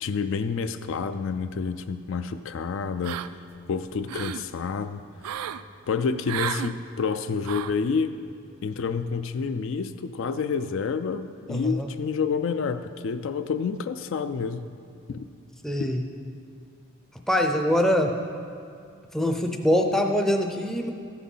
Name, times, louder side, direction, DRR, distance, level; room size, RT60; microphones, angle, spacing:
voice 1, 0.0-3.3 3.7-5.0 5.9-8.2 8.6-14.7 15.1-15.3 15.8-15.9, left 5 dB, 60° left, 10 dB, 0.4 m, -29 dB
sound 1, 3.0-3.6 3.9-4.5 5.2-5.6 6.3-6.7 7.4-7.8, right 9 dB, 85° right, 0.3 m, -33 dB
voice 2, 11.5-11.9 15.6-16.0 17.3-18.1 19.1-20.9, equal, ahead, 3 dB, 0.5 m, -23 dB
14.0 x 6.2 x 5.5 m, 2.4 s
head